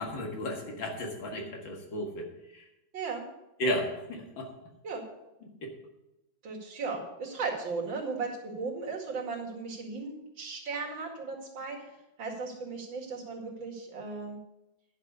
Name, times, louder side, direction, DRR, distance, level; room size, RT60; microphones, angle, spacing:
voice 1, 0.0-2.3 2.5-2.6 3.6-4.5 5.6-5.7, equal, 75° left, 1 dB, 2.6 m, -34 dB
voice 2, 2.9-3.2 4.8-5.0 6.4-11.8 12.2-14.4, right 4 dB, 75° right, -1 dB, 2.9 m, -36 dB
11.0 x 5.6 x 8.1 m, 0.92 s
omnidirectional pair, 2.1 m